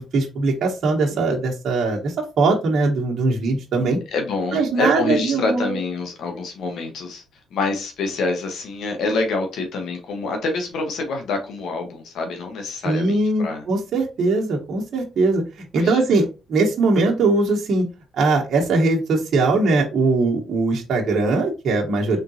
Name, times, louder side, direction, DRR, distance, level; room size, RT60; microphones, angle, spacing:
voice 1, 0.0-4.0 4.5-5.8 12.8-15.4 15.7-17.8 18.2-22.2, right 3 dB, 60° right, 1.2 m, -20 dB
voice 2, 4.1-7.2 7.5-13.6 15.7-16.0, left 3 dB, 75° left, 1.2 m, -26 dB
3.7 x 3.6 x 2.8 m
cardioid pair, 90°, 0 cm